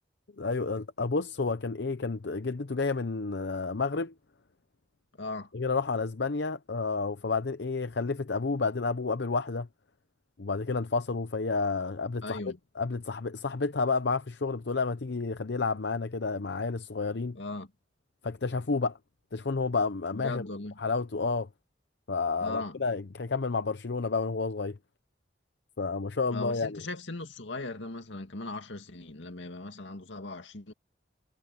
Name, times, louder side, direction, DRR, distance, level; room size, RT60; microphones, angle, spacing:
voice 1, 0.4-4.1 5.5-9.7 10.4-12.4 12.8-17.4 18.2-19.0 19.3-20.5 20.8-21.5 22.1-24.8 25.8-26.8, left 4 dB, 65° left, 0.7 m, -30 dB
voice 2, 5.2-5.5 12.2-12.6 17.4-17.7 20.1-20.8 22.4-22.8 26.3-30.7, left 2 dB, 85° left, 2.2 m, -38 dB
head